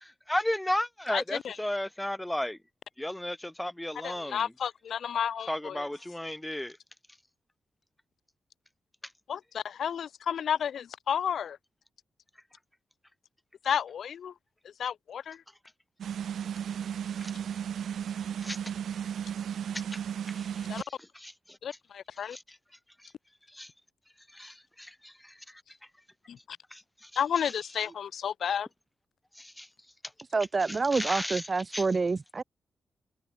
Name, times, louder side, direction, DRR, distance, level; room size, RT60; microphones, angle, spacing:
voice 1, 0.0-2.6 3.0-4.5 5.5-6.8 17.2-17.3 18.4-18.6 20.3-20.5 20.7-20.8 21.1-21.3 22.3-22.4 23.5-23.7 24.3-25.3 26.7-27.1 29.4-29.7 30.7-31.4 31.7-31.8, left 1 dB, 5° left, 0.9 m, -34 dB
voice 2, 1.1-1.6 4.0-5.9 9.3-11.6 13.6-14.3 14.8-15.4 20.7-20.8 21.6-22.4 26.3-26.6 27.2-28.7, left 8 dB, 70° left, 2.9 m, -32 dB
sound 1, 16.0-20.8, right 8 dB, 75° right, 1.0 m, -34 dB
voice 3, 30.3-32.4, right 4 dB, 30° right, 0.5 m, -28 dB
wide cardioid pair, 160°, 0 cm